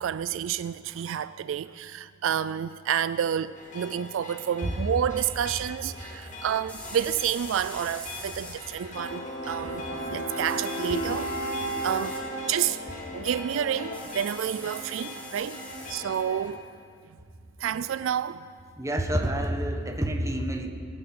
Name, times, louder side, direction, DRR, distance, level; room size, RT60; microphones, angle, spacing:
voice 1, 0.0-12.2 12.5-12.8 13.1-15.6 15.9-16.6 17.6-18.4, right 9 dB, 75° right, 0.3 m, -29 dB
sound 1, 3.2-3.3 6.7-8.6 10.4-12.2 13.9-16.0, left 2 dB, 5° left, 1.9 m, -44 dB
sound 2, 3.5-16.5, left 2 dB, 40° left, 2.4 m, -42 dB
sound 3, 8.9-14.0, right 1 dB, 55° left, 2.9 m, -34 dB
voice 2, 9.5-10.3 18.8-20.7, right 1 dB, 15° right, 1.2 m, -29 dB
18.5 x 9.3 x 7.8 m
head